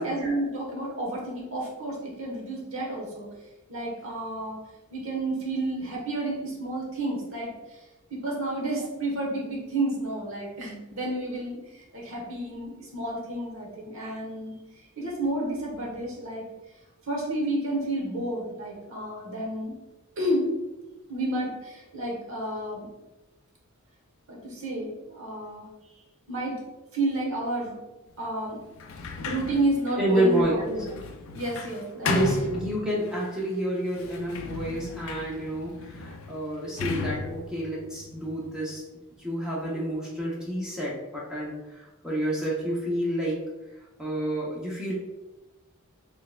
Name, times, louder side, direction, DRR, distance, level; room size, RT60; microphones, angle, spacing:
voice 1, 0.0-3.3 3.7-4.6 4.9-7.5 8.1-14.6 15.0-16.4 17.1-19.7 20.2-20.5 21.1-22.9 24.3-25.7 26.3-26.6 26.9-27.7 28.2-28.6 29.2-30.9 31.3-32.1, right 1 dB, 65° right, -2 dB, 1.2 m, -30 dB
Sliding door, 28.7-33.3 33.9-38.7, left 3 dB, 65° left, 0.4 m, -35 dB
voice 2, 30.0-30.6 32.0-38.8 39.2-43.4 44.0-44.9, right 1 dB, 5° right, -6 dB, 0.6 m, -29 dB
4.4 x 3.2 x 2.2 m, 1.1 s
head